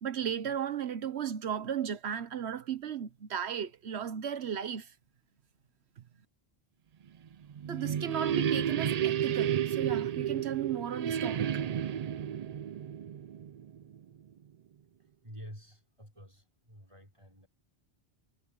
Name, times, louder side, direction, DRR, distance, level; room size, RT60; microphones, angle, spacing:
voice 1, 0.0-4.9 7.7-11.6, right 8 dB, 85° right, 1.2 m, -35 dB
sound 1, 7.3-14.0, right 9 dB, 55° right, 0.4 m, -32 dB
voice 2, 15.0-17.5, equal, 30° right, 4.7 m, -50 dB
omnidirectional pair, 1.1 m